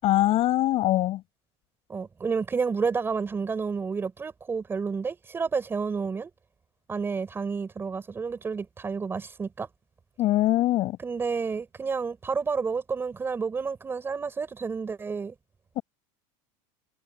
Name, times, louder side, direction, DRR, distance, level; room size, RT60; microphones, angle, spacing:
voice 1, 0.0-1.2 10.2-11.0 15.8-15.9, left 15 dB, 40° left, 7.6 m, -22 dB
voice 2, 1.9-6.3 6.9-9.7 11.0-15.3, right 5 dB, 15° right, 4.2 m, -30 dB
cardioid pair, 165°, 15 cm